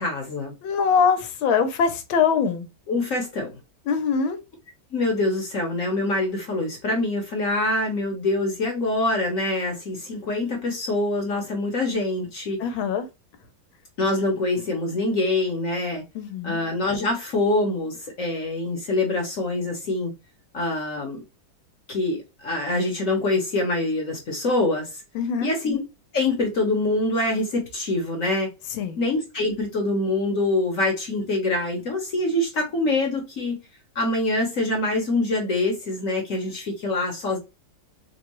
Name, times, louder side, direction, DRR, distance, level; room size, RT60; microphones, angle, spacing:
voice 1, 0.0-0.5 2.9-3.5 4.9-12.6 14.0-16.0 16.4-20.1 20.5-21.2 21.9-25.0 25.4-25.8 26.1-28.5 29.0-33.6 33.9-37.4, left 2 dB, 50° left, 1.2 m, -25 dB
voice 2, 0.6-2.7 3.9-4.4 12.6-13.1 16.1-16.6 25.1-25.6 28.7-29.0, left 6 dB, 85° left, 1.6 m, -23 dB
4.4 x 2.3 x 3.0 m
omnidirectional pair, 2.1 m